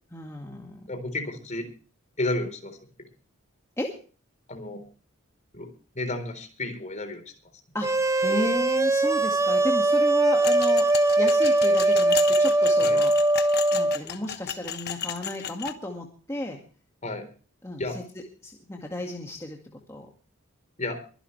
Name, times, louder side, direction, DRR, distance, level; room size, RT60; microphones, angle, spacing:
voice 1, 0.1-0.9 3.8-3.9 7.7-10.9 11.2-13.2 13.7-16.6 17.6-18.0 18.4-19.6 19.9-20.1, left 1 dB, 15° left, 1 dB, 2.0 m, -33 dB
voice 2, 0.9-1.7 2.2-2.8 4.5-4.8 5.5-5.7 6.0-7.2 12.8-13.0 17.0-17.3 17.8-18.0 20.8-21.0, left 2 dB, 35° left, 7 dB, 4.0 m, -31 dB
sound 1, 7.8-14.0, right 2 dB, 15° right, 0.8 m, -21 dB
sound 2, 10.4-15.7, left 9 dB, 50° left, 1.2 m, -34 dB
23.5 x 11.0 x 3.3 m, 0.38 s
head